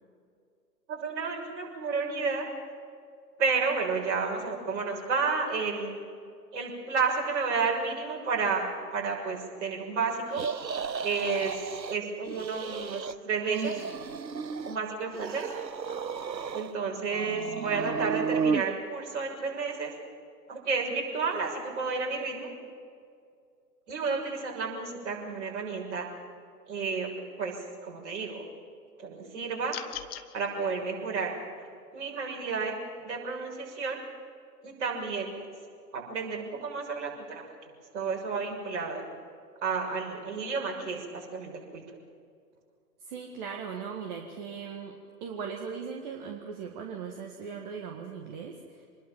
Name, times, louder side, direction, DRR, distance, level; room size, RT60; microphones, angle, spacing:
voice 1, 0.9-2.5 3.4-6.0 6.5-10.4 11.0-11.5 11.9-13.7 14.7-15.4 16.5-19.9 20.5-22.5 23.9-26.1 26.7-27.1 27.4-27.5 27.8-28.4 29.0-29.8 30.3-31.3 31.6-31.7 31.9-32.7 33.0-34.0 34.6-35.3 35.9-37.4 37.9-39.0 39.6-41.8, right 4 dB, 45° right, 0 dB, 6.3 m, -31 dB
sound 1, 10.3-12.0 12.3-13.1 13.4-14.8 15.1-16.7 17.1-18.6, right 6 dB, 90° right, 0.8 m, -33 dB
sound 2, 29.7-30.3, left 10 dB, 35° left, 1.4 m, -38 dB
voice 2, 43.0-48.9, right 6 dB, 25° right, 2 dB, 1.8 m, -39 dB
26.5 x 20.5 x 7.5 m, 2.3 s
figure-of-eight pair, 125°, 49 cm